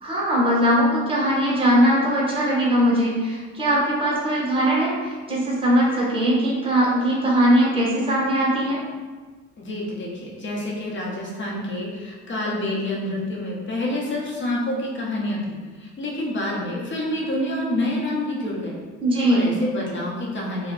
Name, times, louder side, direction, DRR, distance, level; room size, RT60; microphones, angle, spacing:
voice 1, 0.0-8.8 19.0-19.5, equal, 20° right, -5 dB, 0.9 m, -20 dB
voice 2, 9.6-18.8 19.3-20.7, left 1 dB, 40° left, -3 dB, 0.8 m, -28 dB
2.2 x 2.2 x 3.6 m, 1.4 s
cardioid pair, 90°, 30 cm